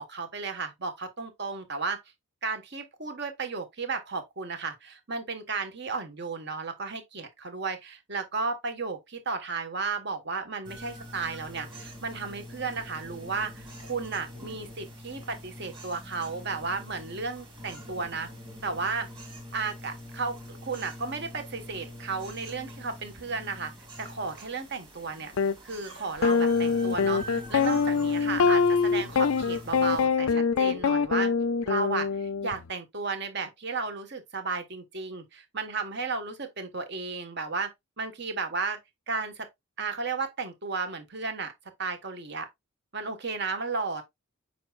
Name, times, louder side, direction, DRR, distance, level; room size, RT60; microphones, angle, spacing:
voice 1, 0.0-2.0 2.4-18.3 18.6-19.1 19.5-23.7 24.0-25.3 25.6-31.3 31.6-37.7 38.0-38.8 39.1-39.5 39.8-41.5 41.8-42.5 42.9-44.0, right 4 dB, 50° right, 1.4 m, -34 dB
sound 1, 10.6-30.0, left 1 dB, 20° right, 2.2 m, -44 dB
sound 2, 25.4-25.5 26.2-32.5, left 5 dB, 75° left, 0.5 m, -24 dB
7.6 x 5.3 x 2.4 m
head